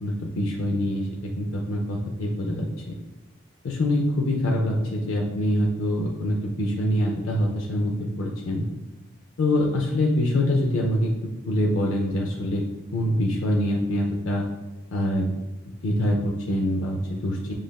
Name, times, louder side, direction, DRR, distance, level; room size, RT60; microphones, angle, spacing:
voice 1, 0.0-3.0 3.6-8.7 9.4-11.1 11.5-12.7 12.9-14.5 14.9-15.3 15.8-17.5, left 1 dB, 85° left, -1 dB, 0.5 m, -25 dB
7.0 x 2.4 x 2.3 m, 1.1 s
head